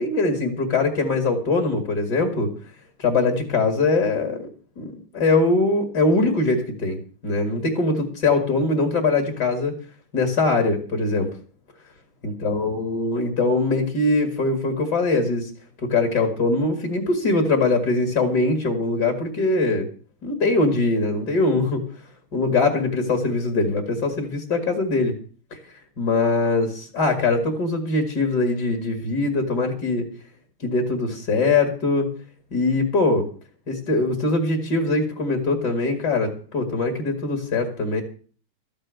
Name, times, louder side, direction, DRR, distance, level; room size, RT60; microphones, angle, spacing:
voice 1, 0.0-2.5 3.0-4.5 4.8-9.8 10.1-11.3 12.2-15.5 15.8-19.9 20.2-21.8 22.3-25.2 26.0-30.1 30.6-32.1 32.5-33.3 33.7-38.0, left 3 dB, 50° left, 6 dB, 2.6 m, -22 dB
13.5 x 8.9 x 6.4 m, 0.42 s
omnidirectional pair, 2.3 m